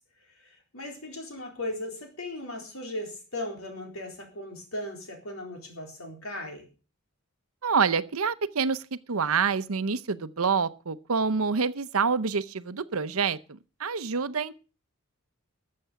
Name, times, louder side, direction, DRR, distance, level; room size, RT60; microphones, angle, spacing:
voice 1, 0.7-6.7, left 1 dB, 75° left, 4.1 m, -37 dB
voice 2, 7.6-13.4 13.8-14.5, right 5 dB, 80° right, 0.8 m, -27 dB
13.5 x 7.5 x 6.9 m
head